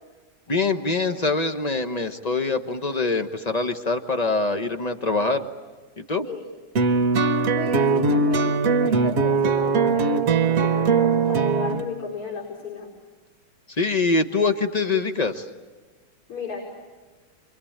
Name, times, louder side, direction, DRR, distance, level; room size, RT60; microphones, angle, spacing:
voice 1, 0.5-5.5 6.0-6.3 13.8-15.5, left 3 dB, 35° left, 8 dB, 0.6 m, -24 dB
sound 1, 6.7-11.8, right 4 dB, 50° right, 1.2 m, -20 dB
voice 2, 7.5-12.9 16.3-16.6, left 4 dB, 90° left, -3 dB, 6.1 m, -34 dB
29.0 x 23.5 x 8.7 m, 1.3 s
omnidirectional pair, 2.4 m